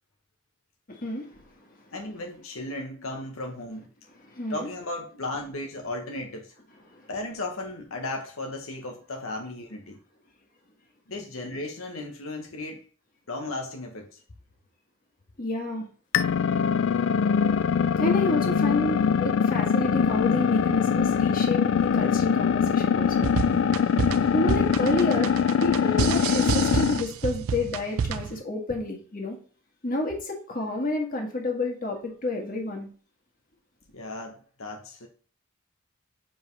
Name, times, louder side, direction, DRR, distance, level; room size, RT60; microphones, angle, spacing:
voice 1, 0.9-1.9 4.1-4.7 6.9-7.1 15.4-15.9 18.0-23.3 24.3-25.3 25.6-29.4 29.8-32.9, left 2 dB, 40° left, 1.8 m, -30 dB
voice 2, 1.9-3.9 4.5-6.5 7.1-10.0 11.1-12.8 13.3-14.2 33.9-35.1, left 2 dB, 85° left, 1.1 m, -35 dB
sound 1, 16.1-27.0, left 7 dB, 65° left, 0.3 m, -23 dB
sound 2, 23.1-28.4, right 6 dB, 90° right, 0.4 m, -29 dB
7.4 x 5.2 x 3.2 m
head